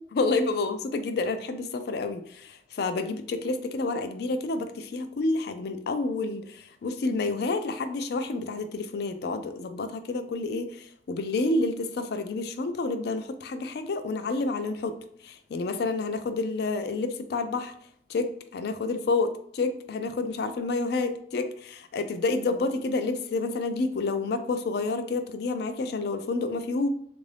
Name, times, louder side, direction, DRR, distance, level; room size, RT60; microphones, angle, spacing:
voice 1, 0.1-14.9 15.2-17.7 18.1-26.9, left 3 dB, 55° left, 10 dB, 0.3 m, -29 dB
3.5 x 2.5 x 3.3 m, 0.65 s
head